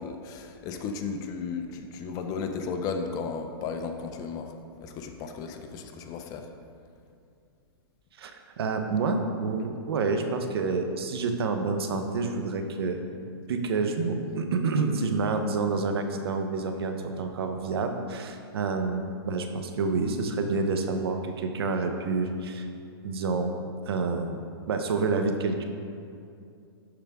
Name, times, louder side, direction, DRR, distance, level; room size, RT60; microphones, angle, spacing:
voice 1, 0.0-4.5 4.8-6.5, left 5 dB, 25° left, 6 dB, 0.6 m, -34 dB
voice 2, 8.6-13.0 13.5-22.7 23.0-23.5 23.9-25.7, right 4 dB, 70° right, 5 dB, 0.9 m, -28 dB
12.0 x 5.0 x 3.6 m, 2.4 s
hypercardioid pair, 140°, 13 cm